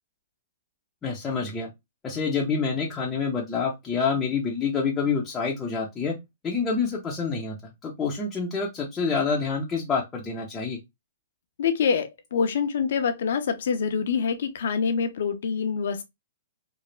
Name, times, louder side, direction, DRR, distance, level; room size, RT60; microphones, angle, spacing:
voice 1, 1.0-1.7 2.0-6.2 6.4-10.8, left 5 dB, 15° left, 0.6 m, -27 dB
voice 2, 11.6-16.0, left 6 dB, 65° left, 0.6 m, -25 dB
3.1 x 2.0 x 2.2 m
hypercardioid pair, 140°, 0 cm